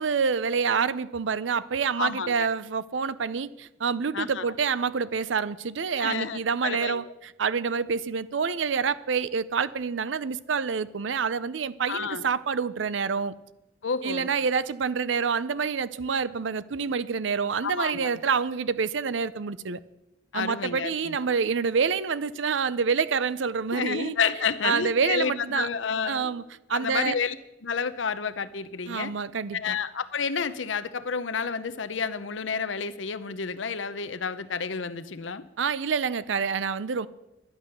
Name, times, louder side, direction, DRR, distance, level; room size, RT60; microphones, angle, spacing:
voice 1, 0.0-7.0 7.4-13.4 14.0-19.8 20.3-24.1 24.6-25.7 26.0-26.4 26.7-27.1 28.9-29.8 35.6-37.1, right 5 dB, 80° right, 0.6 m, -27 dB
voice 2, 2.0-2.5 4.1-4.5 6.0-7.1 11.9-12.2 13.8-14.3 17.6-18.1 20.3-21.3 23.7-26.3 26.7-27.3 27.6-29.1 29.5-35.4, left 6 dB, 85° left, 0.8 m, -30 dB
11.5 x 10.5 x 6.7 m
head